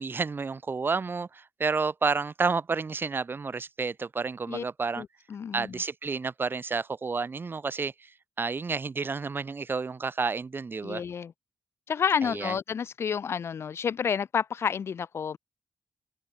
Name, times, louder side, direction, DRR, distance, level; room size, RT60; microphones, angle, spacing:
voice 1, 0.0-5.0 5.5-8.1 8.4-11.0 12.2-12.5, right 4 dB, 50° right, 6.7 m, -30 dB
voice 2, 4.9-5.8 10.8-11.3 11.9-15.4, left 7 dB, 70° left, 1.4 m, -30 dB
open air
supercardioid pair, 45°, 5 cm